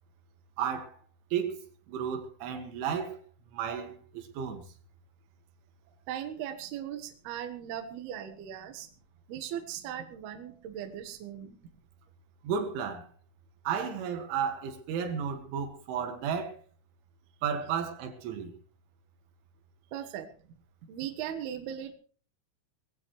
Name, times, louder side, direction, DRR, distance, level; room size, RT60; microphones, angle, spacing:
voice 1, 0.6-0.9 1.3-1.6 1.9-3.2 3.5-4.6 12.4-13.1 13.7-16.6 17.4-18.5, right 7 dB, 85° right, 4.4 m, -33 dB
voice 2, 5.9-8.9 9.3-11.6 19.9-20.3 20.9-21.9, right 10 dB, 65° right, 3.1 m, -38 dB
21.0 x 16.0 x 3.2 m
omnidirectional pair, 5.4 m